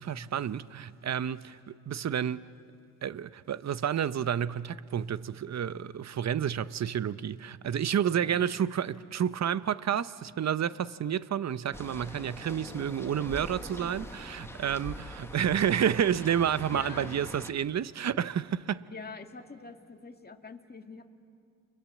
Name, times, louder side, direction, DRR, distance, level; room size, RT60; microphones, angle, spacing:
voice 1, 0.0-2.5 3.0-18.8, right 9 dB, 45° right, 0.8 m, -30 dB
sound 1, 11.7-17.5, left 1 dB, 5° left, 1.8 m, -43 dB
voice 2, 16.7-17.1 18.9-21.1, left 4 dB, 25° left, 2.0 m, -44 dB
30.0 x 24.0 x 7.4 m
cardioid pair, 75°, 37 cm